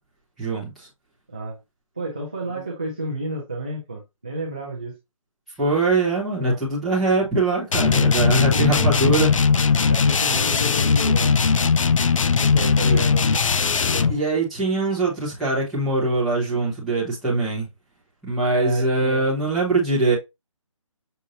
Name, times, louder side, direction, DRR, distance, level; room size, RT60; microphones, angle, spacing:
voice 1, 0.4-0.9 5.6-9.3 12.8-13.0 14.1-17.7 18.2-20.2, right 2 dB, ahead, 0.9 m, -22 dB
voice 2, 2.0-4.9 6.4-6.6 8.1-9.0 9.9-11.7 12.3-13.4 13.9-14.1 18.5-19.3, right 1 dB, 15° right, 0.4 m, -31 dB
sound 1, 7.7-14.2, left 5 dB, 70° left, 0.5 m, -19 dB
6.5 x 2.6 x 2.7 m
hypercardioid pair, 175°, 17 cm